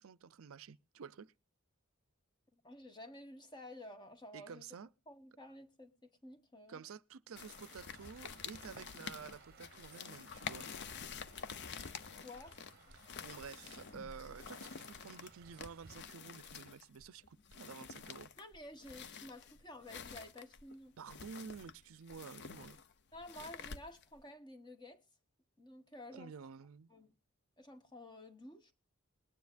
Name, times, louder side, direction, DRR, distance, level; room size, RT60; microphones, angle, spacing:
voice 1, 0.0-1.3 4.3-4.9 6.7-10.7 12.9-18.3 21.0-22.8 26.1-26.9, right 6 dB, 70° right, 0.5 m, -51 dB
voice 2, 2.5-4.7 5.1-6.8 12.1-12.6 18.4-20.9 23.1-25.0 25.6-26.3 26.9-27.1 27.6-28.7, left 1 dB, 20° left, 1.2 m, -52 dB
sound 1, 7.3-15.9, right 5 dB, 45° right, 0.8 m, -61 dB
sound 2, 7.4-24.2, left 6 dB, 55° left, 0.6 m, -49 dB
20.5 x 9.4 x 2.5 m
head